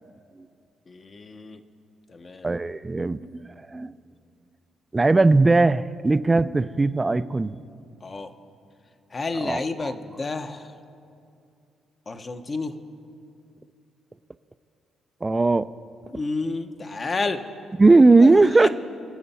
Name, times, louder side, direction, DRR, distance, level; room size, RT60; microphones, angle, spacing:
voice 1, 0.9-1.6 2.1-2.5 8.0-8.3 9.1-10.8 12.1-12.7 16.1-17.4 18.2-18.3 18.6-18.7, left 3 dB, 35° left, 8 dB, 0.8 m, -30 dB
voice 2, 2.4-3.2 3.7-4.0 4.9-7.6 9.4-9.9 15.2-15.7 17.8-18.7, right 3 dB, 20° right, 15 dB, 0.4 m, -18 dB
24.0 x 8.0 x 4.2 m, 2.5 s
cardioid pair, 90°, 0 cm